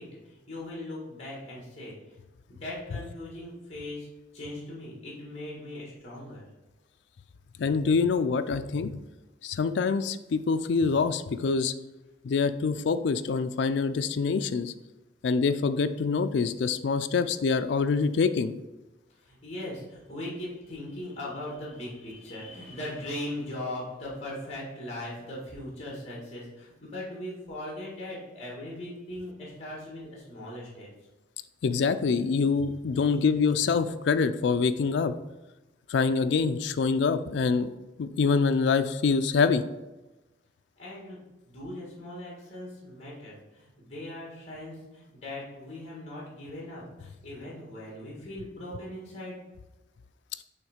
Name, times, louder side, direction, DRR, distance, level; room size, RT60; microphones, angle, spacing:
voice 1, 0.0-2.1 2.5-6.4 19.1-30.9 33.1-33.2 40.8-49.4, left 1 dB, 35° left, -4 dB, 1.6 m, -39 dB
voice 2, 7.6-9.0 9.4-11.7 12.2-14.7 15.2-18.5 31.6-35.1 35.9-37.7 38.0-39.6, left 5 dB, 70° left, 11 dB, 0.3 m, -25 dB
6.4 x 3.1 x 5.0 m, 1.0 s
head